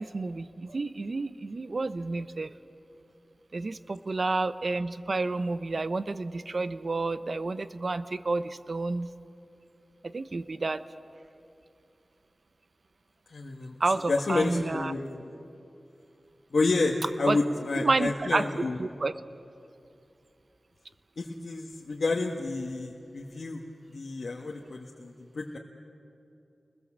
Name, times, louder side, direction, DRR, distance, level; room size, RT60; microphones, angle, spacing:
voice 1, 0.0-2.5 3.5-9.1 10.0-10.8 13.8-14.9 17.3-17.4 17.7-18.5 18.8-19.1, right 3 dB, 60° right, 13 dB, 0.9 m, -30 dB
voice 2, 13.3-13.7 14.1-15.2 16.5-18.8 21.2-23.6 23.9-25.6, left 3 dB, 75° left, -1 dB, 1.6 m, -29 dB
29.5 x 21.0 x 7.5 m, 2.7 s
cardioid pair, 50°, 0 cm